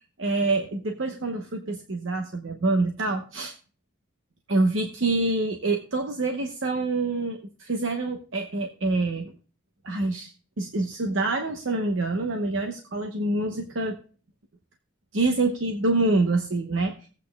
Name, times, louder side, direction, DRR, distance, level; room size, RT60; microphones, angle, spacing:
voice 1, 0.2-3.5 4.5-9.3 9.8-10.3 10.6-14.0 15.1-16.9, right 2 dB, 80° right, 4 dB, 0.9 m, -26 dB
19.0 x 8.4 x 2.3 m, 0.38 s
head